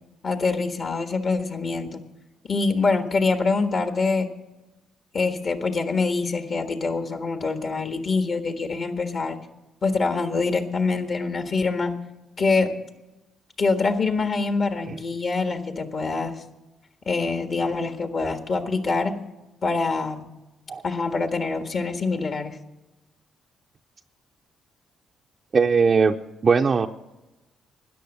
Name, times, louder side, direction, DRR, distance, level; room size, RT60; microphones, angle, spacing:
voice 1, 0.2-2.0 2.5-4.3 5.1-9.4 9.8-11.9 12.4-12.7 13.6-16.4 17.0-19.1 19.6-20.3 20.8-22.6, left 4 dB, 50° left, 7 dB, 1.5 m, -25 dB
voice 2, 25.5-26.1 26.4-26.9, right 5 dB, 40° right, 3 dB, 0.5 m, -19 dB
13.5 x 9.9 x 6.5 m, 1.0 s
cardioid pair, 90°, 0 cm